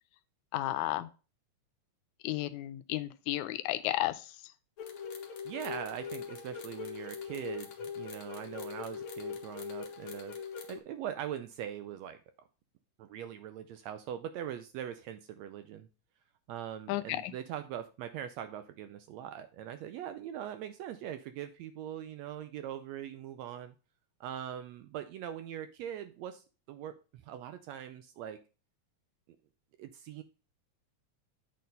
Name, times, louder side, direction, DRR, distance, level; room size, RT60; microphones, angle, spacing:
voice 1, 0.5-1.1 2.2-4.3 16.9-17.3, left 15 dB, 80° left, 13 dB, 2.0 m, -33 dB
sound 1, 4.8-10.8, left 6 dB, 55° left, 1.7 m, -41 dB
voice 2, 5.5-10.4 10.7-12.2 13.0-15.9 16.5-23.8 24.2-26.9 27.2-28.4 29.8-30.2, right 10 dB, 75° right, 9 dB, 1.7 m, -41 dB
8.5 x 4.3 x 5.2 m, 0.33 s
omnidirectional pair, 3.4 m